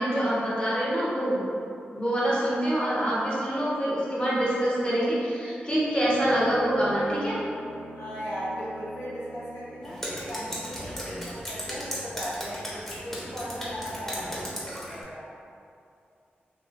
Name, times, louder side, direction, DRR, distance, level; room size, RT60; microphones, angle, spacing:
voice 1, 0.0-1.5 1.9-7.4, right 1 dB, 25° left, -8 dB, 1.2 m, -25 dB
Bowed string instrument, 5.7-9.9, right 1 dB, 60° right, 0.7 m, -42 dB
voice 2, 7.9-15.3, equal, 85° left, -10 dB, 0.8 m, -37 dB
Drip, 9.8-15.0, equal, 10° left, 1.0 m, -36 dB
3.1 x 2.7 x 2.5 m, 2.5 s
cardioid pair, 40°, 4 cm